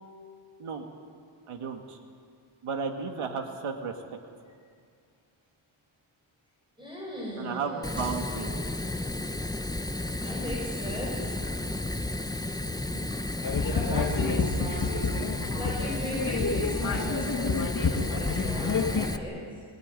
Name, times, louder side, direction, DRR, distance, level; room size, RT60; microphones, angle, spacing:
voice 1, 1.5-2.0 2.6-3.9 7.4-8.6, right 5 dB, 80° right, 3 dB, 2.1 m, -33 dB
voice 2, 6.8-8.1 8.4-8.5 10.0-11.7 12.0-12.1 12.6-13.0 13.4-19.4, equal, 10° right, -4 dB, 6.5 m, -38 dB
Fire, 7.8-19.2, left 1 dB, 10° left, 0.9 m, -33 dB
sound 1, 13.4-19.1, left 4 dB, 40° left, 2.0 m, -29 dB
22.5 x 20.5 x 9.8 m, 2.3 s
wide cardioid pair, 105°, 50 cm